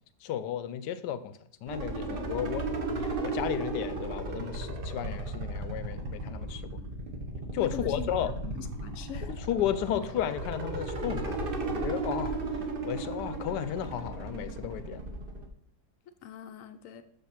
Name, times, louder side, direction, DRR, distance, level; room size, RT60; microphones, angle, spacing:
voice 1, 0.2-1.3 1.6-6.6 7.5-8.3 9.2-12.4 12.9-15.0, left 10 dB, 85° left, 13 dB, 1.2 m, -33 dB
sound 1, 1.7-15.5, right 2 dB, 40° right, 0.9 m, -35 dB
voice 2, 7.6-9.4 16.2-17.0, left 8 dB, 65° left, 10 dB, 0.8 m, -42 dB
6.6 x 5.5 x 5.8 m, 0.67 s
omnidirectional pair, 1.8 m